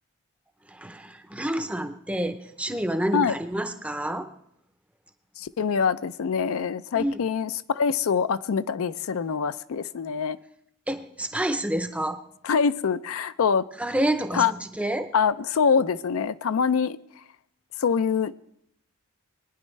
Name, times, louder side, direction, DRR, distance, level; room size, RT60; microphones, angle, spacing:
voice 1, 0.7-4.3 6.9-7.2 10.9-12.2 13.8-15.1, right 1 dB, 5° right, 9 dB, 0.5 m, -28 dB
voice 2, 5.4-10.4 12.4-13.6 14.3-14.5 15.1-17.0 17.8-18.4, left 6 dB, 75° left, 14 dB, 0.4 m, -24 dB
21.5 x 10.0 x 3.2 m, 0.74 s
head